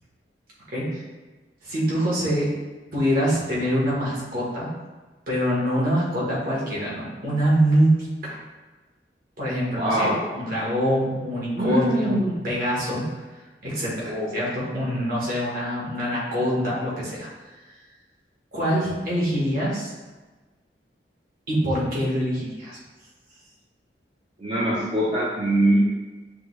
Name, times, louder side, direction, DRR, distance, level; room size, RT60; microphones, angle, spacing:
voice 1, 0.7-1.0 1.6-2.5 2.9-4.7 5.3-8.4 9.4-13.0 13.6-17.3 18.5-19.9 21.5-22.8, equal, 55° right, -6 dB, 1.4 m, -24 dB
voice 2, 9.7-10.2 11.5-12.4 14.0-14.3 24.4-25.8, right 1 dB, 30° right, -8 dB, 0.7 m, -23 dB
6.3 x 2.3 x 3.2 m, 1.2 s
head